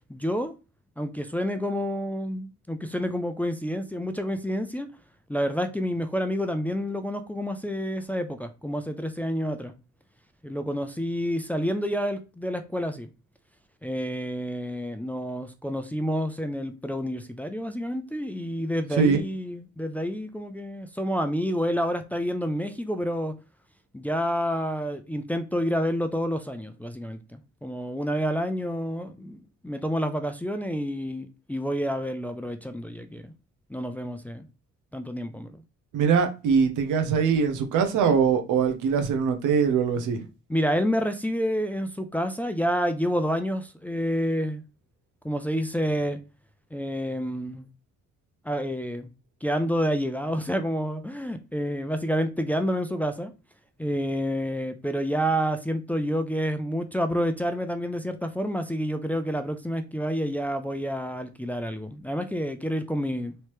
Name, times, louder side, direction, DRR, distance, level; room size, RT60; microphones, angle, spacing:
voice 1, 0.1-0.5 1.0-4.9 5.3-9.7 10.4-13.1 13.8-23.3 23.9-33.3 33.7-34.5 34.9-35.6 40.5-44.6 45.2-46.2 46.7-47.7 48.4-49.1 49.4-53.3 53.8-63.3, equal, 5° left, 0.4 m, -29 dB
voice 2, 35.9-40.2, right 6 dB, 85° right, 0.8 m, -22 dB
3.2 x 2.8 x 3.0 m
cardioid pair, 90°, 30 cm